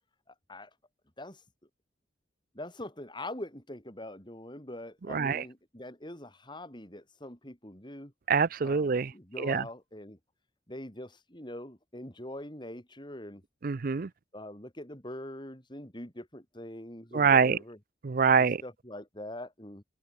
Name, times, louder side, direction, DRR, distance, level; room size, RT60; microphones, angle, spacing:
voice 1, 0.3-0.7 1.2-1.4 2.5-8.1 8.6-10.2 10.7-13.4 14.3-17.8 18.4-19.8, left 1 dB, 25° left, 6.3 m, -43 dB
voice 2, 5.1-5.4 8.3-9.1 9.4-9.6 13.6-14.1 17.1-17.6 18.0-18.6, right 5 dB, 50° right, 0.5 m, -25 dB
head